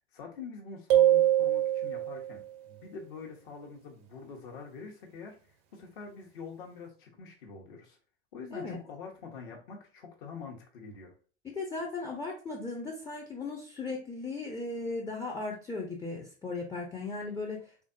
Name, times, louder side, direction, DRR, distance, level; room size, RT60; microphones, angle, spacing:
voice 1, 0.1-5.4 5.7-8.0 8.3-11.1, left 5 dB, 55° left, 1 dB, 1.0 m, -45 dB
sound 1, 0.9-2.4, right 13 dB, 50° right, 0.6 m, -24 dB
voice 2, 11.5-17.6, left 3 dB, 10° left, 0 dB, 0.5 m, -37 dB
3.5 x 2.5 x 2.5 m, 0.39 s
figure-of-eight pair, 75°, 31 cm